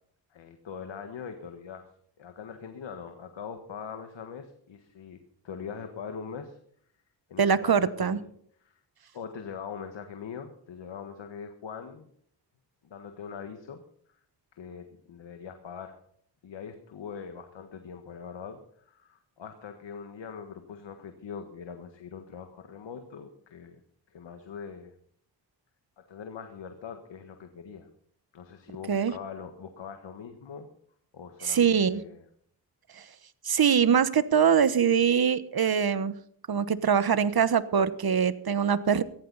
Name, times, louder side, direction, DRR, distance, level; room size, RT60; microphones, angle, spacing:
voice 1, 0.3-1.9 2.2-5.2 5.4-6.6 7.3-8.2 8.6-8.8 9.1-12.1 12.8-13.8 14.1-14.2 14.5-16.0 16.4-23.8 24.1-24.9 26.0-27.9 28.3-30.7 31.1-32.2, left 6 dB, 80° left, 6 dB, 1.6 m, -42 dB
voice 2, 7.4-8.2 28.9-29.1 31.4-32.0 33.4-36.2 36.5-39.0, right 7 dB, 55° right, 14 dB, 1.2 m, -23 dB
16.5 x 14.5 x 4.1 m, 0.64 s
cardioid pair, 50°, 44 cm